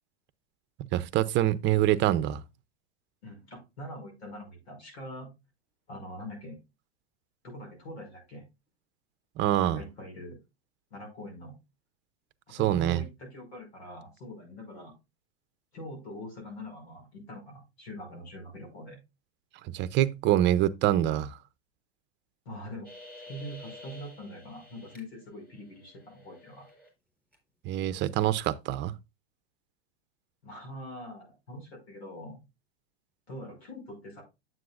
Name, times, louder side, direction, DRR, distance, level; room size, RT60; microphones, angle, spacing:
voice 1, 0.9-2.4 9.4-9.8 12.6-13.0 19.7-21.4 27.6-28.9, right 13 dB, 35° right, 0.7 m, -25 dB
voice 2, 3.2-5.3 5.9-6.6 7.4-8.4 9.6-10.4 10.9-11.6 12.5-14.9 15.7-19.0 22.5-22.9 23.3-26.7 30.4-32.4 33.3-34.2, equal, 80° left, 5.5 m, -43 dB
sound 1, 22.8-25.0 25.4-26.9 27.3-27.4, left 2 dB, 5° left, 4.0 m, -50 dB
9.4 x 7.8 x 2.5 m
hypercardioid pair, 105°, 32 cm